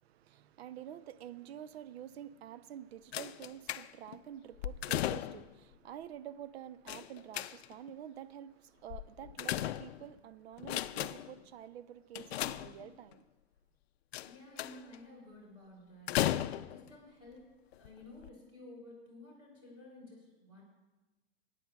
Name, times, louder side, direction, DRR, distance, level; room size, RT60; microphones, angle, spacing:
voice 1, 0.0-13.3, right 10 dB, 85° right, 0.5 m, -48 dB
sound 1, 3.1-4.2 4.6-5.6 6.9-7.9 8.9-10.2 10.6-11.4 12.1-13.1 14.1-15.0 16.1-16.9 17.7-17.9 18.2-18.3, left 13 dB, 90° left, 0.5 m, -36 dB
voice 2, 14.2-20.6, left 2 dB, 15° right, 3.5 m, -54 dB
20.0 x 9.8 x 2.3 m
supercardioid pair, 145°, 31 cm